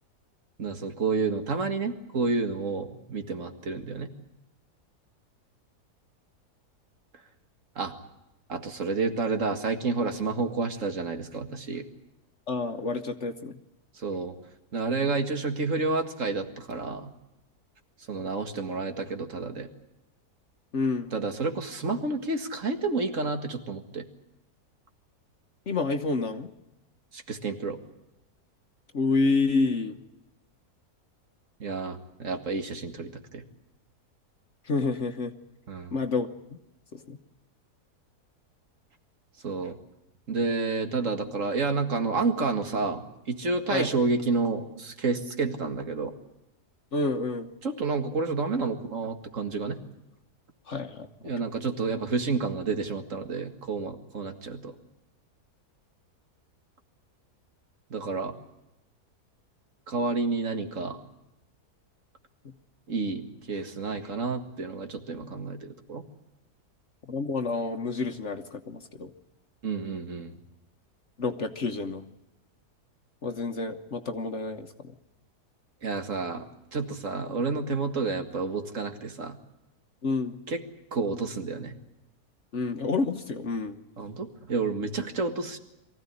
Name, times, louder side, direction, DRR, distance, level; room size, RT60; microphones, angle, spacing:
voice 1, 0.6-4.1 7.8-7.9 8.5-11.9 14.0-14.3 14.7-17.1 18.1-19.7 21.1-24.0 27.1-27.8 31.6-33.4 35.7-35.9 39.4-39.8 40.3-46.2 47.6-49.8 51.2-54.7 57.9-58.3 59.9-61.0 62.9-66.0 69.6-70.3 75.8-76.5 76.7-79.4 80.5-80.6 80.9-81.7 84.0-85.6, right 4 dB, 55° right, 6 dB, 2.2 m, -30 dB
voice 2, 12.5-13.6 20.7-21.1 25.7-26.5 28.9-30.0 34.7-35.3 35.9-36.3 36.9-37.2 43.7-43.9 46.9-47.5 50.7-51.3 67.1-69.1 71.2-72.0 73.2-74.9 80.0-80.4 82.5-83.8, left 3 dB, 50° left, 6 dB, 1.4 m, -29 dB
23.5 x 15.5 x 9.7 m, 0.92 s
omnidirectional pair, 1.7 m